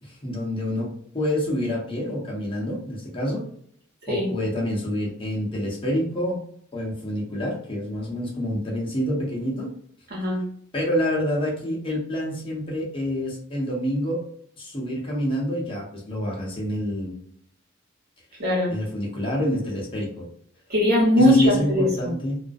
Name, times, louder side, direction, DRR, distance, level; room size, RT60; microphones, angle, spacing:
voice 1, 0.0-3.4 4.1-6.4 6.7-9.7 10.7-14.2 14.6-17.2 18.7-20.2 21.2-22.4, equal, 25° left, -3 dB, 0.7 m, -27 dB
voice 2, 10.1-10.4 18.4-18.7 20.7-22.1, left 1 dB, 50° right, -4 dB, 1.1 m, -20 dB
2.3 x 2.1 x 2.5 m, 0.64 s
head